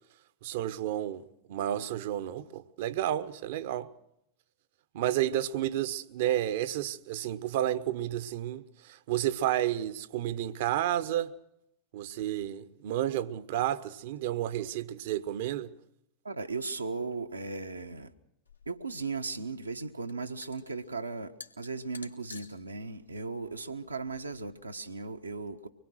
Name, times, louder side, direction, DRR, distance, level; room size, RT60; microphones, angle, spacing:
voice 1, 0.4-1.2 1.5-3.9 4.9-11.3 11.9-15.7, right 12 dB, 55° right, 1.0 m, -31 dB
voice 2, 16.2-18.1 18.7-25.7, right 3 dB, 80° right, 1.3 m, -37 dB
sound 1, 18.4-24.6, left 3 dB, 85° left, 2.0 m, -53 dB
24.5 x 21.0 x 6.3 m
figure-of-eight pair, 90°, 0 cm